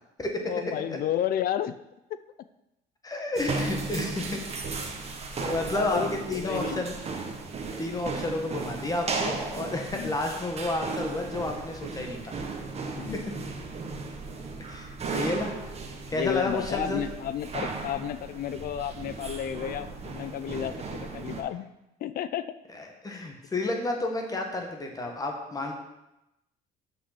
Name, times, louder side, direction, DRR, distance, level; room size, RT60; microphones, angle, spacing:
voice 1, 0.4-1.8 5.7-6.9 7.9-8.1 9.9-10.2 13.0-13.2 16.1-21.7 22.0-22.4, left 10 dB, 60° left, 13 dB, 0.5 m, -32 dB
voice 2, 3.0-4.4 5.4-7.0 7.8-12.4 14.7-15.5 16.1-17.0 22.7-25.8, left 2 dB, 20° left, 2 dB, 1.6 m, -31 dB
sound 1, 3.4-21.4, right 4 dB, 40° right, 1.3 m, -35 dB
6.2 x 5.6 x 6.0 m, 0.90 s
cardioid pair, 110°, 17 cm